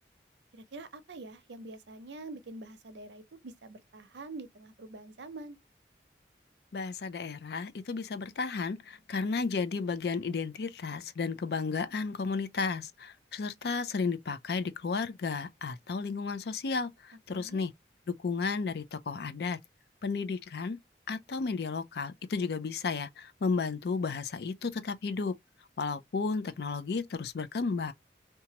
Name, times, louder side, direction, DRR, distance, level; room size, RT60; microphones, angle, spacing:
voice 1, 0.5-5.6 17.3-17.6, right 2 dB, 85° right, 0.6 m, -45 dB
voice 2, 6.7-17.7 18.2-19.6 20.0-20.8 21.1-25.3 25.8-27.9, left 4 dB, 65° left, 0.4 m, -33 dB
2.9 x 2.3 x 2.8 m
head